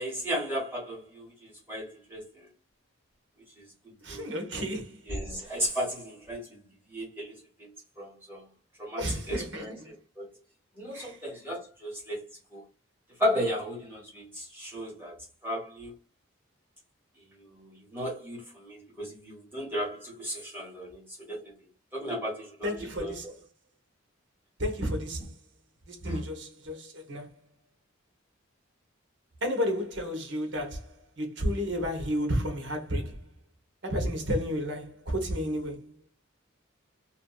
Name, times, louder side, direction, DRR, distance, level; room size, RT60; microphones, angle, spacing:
voice 1, 0.0-2.2 4.1-4.3 5.1-6.6 6.9-7.7 8.0-8.4 8.8-10.3 10.8-12.2 12.5-12.6 13.2-15.1 15.4-15.9 17.5-21.0 21.3-21.5 21.9-23.3 26.0-26.3, equal, 10° right, 1.1 m, -34 dB
voice 2, 4.0-5.0 9.0-9.7 10.9-11.2 22.6-23.3 24.6-25.2 25.9-27.3 29.4-30.8 31.2-33.1 33.8-35.9, equal, 55° right, 0.8 m, -31 dB
2.9 x 2.5 x 2.3 m
head